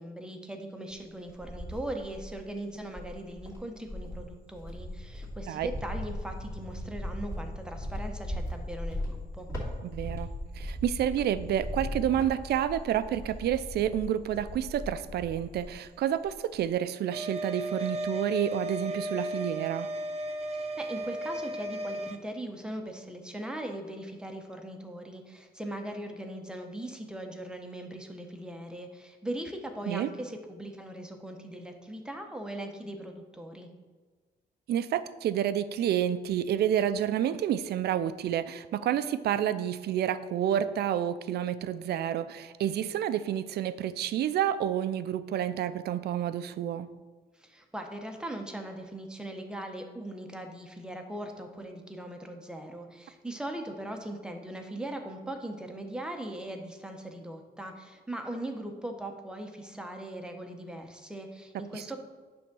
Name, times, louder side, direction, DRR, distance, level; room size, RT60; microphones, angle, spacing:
voice 1, 0.0-9.5 20.5-33.7 47.3-62.0, right 1 dB, 5° right, 3 dB, 0.8 m, -40 dB
Cricket, 0.9-2.4 2.9-15.9 16.2-16.7, left 1 dB, 15° left, 2.4 m, -38 dB
voice 2, 9.8-10.3 10.6-19.9 29.9-30.1 34.7-46.9 61.7-61.8, right 10 dB, 75° right, 13 dB, 0.4 m, -29 dB
sound 1, 17.1-22.2, right 1 dB, 35° right, 0.6 m, -35 dB
9.1 x 3.5 x 6.1 m, 1.4 s
cardioid pair, 140°, 17 cm